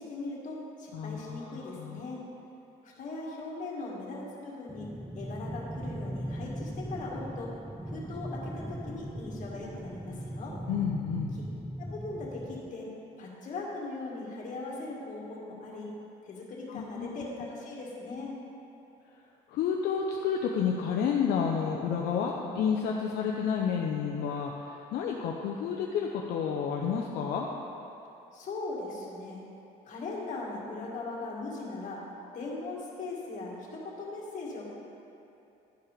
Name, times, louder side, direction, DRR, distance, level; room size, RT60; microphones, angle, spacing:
voice 1, 0.0-2.2 2.8-4.9 5.1-7.5 7.9-10.6 11.3-11.4 11.8-12.9 13.2-15.9 16.2-18.3 28.3-29.4 29.9-32.0 32.3-34.7, left 3 dB, 50° left, -4 dB, 2.1 m, -39 dB
voice 2, 0.9-2.0 10.7-11.4 16.7-17.2 19.5-27.5, left 7 dB, 75° left, -1 dB, 0.7 m, -30 dB
sound 1, 4.7-12.7, right 1 dB, 5° right, 0.4 m, -39 dB
11.5 x 4.7 x 5.0 m, 2.9 s
cardioid pair, 110°, 17 cm